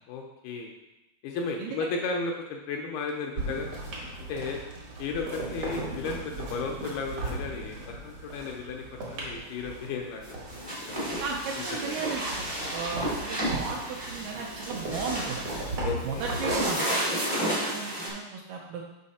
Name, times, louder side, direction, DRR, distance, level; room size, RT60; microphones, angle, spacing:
voice 1, 0.1-0.7 1.2-3.7 4.3-4.6 5.0-11.0 11.7-12.0 15.8-16.2, left 4 dB, 80° left, 1 dB, 2.4 m, -34 dB
sound 1, 3.3-16.7, right 2 dB, 65° right, 1.5 m, -37 dB
sound 2, 10.2-18.1, equal, 30° right, 0.4 m, -32 dB
voice 2, 11.2-12.5 12.7-15.4 16.0-18.8, right 5 dB, 80° right, -1 dB, 2.3 m, -35 dB
6.5 x 5.5 x 4.1 m, 0.97 s
omnidirectional pair, 5.0 m